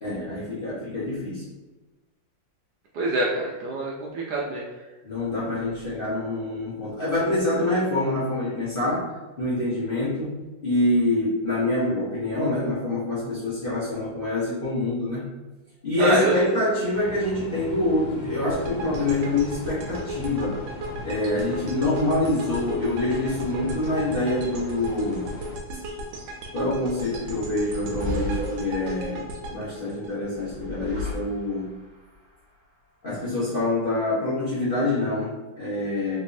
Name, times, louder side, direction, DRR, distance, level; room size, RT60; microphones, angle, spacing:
voice 1, 0.0-1.4 5.0-15.2 15.8-20.6 21.0-25.3 26.5-31.7 33.0-36.2, left 2 dB, 40° left, -11 dB, 0.8 m, -26 dB
voice 2, 2.9-4.6 16.0-16.3, right 1 dB, 70° right, -4 dB, 1.0 m, -25 dB
sound 1, 16.9-25.6, left 1 dB, 80° left, 1.3 m, -40 dB
sound 2, 18.5-30.7, equal, 90° right, 1.4 m, -36 dB
sound 3, 27.4-29.3 30.3-31.9, left 1 dB, 25° right, 1.4 m, -33 dB
3.4 x 3.1 x 2.5 m, 1.1 s
omnidirectional pair, 2.1 m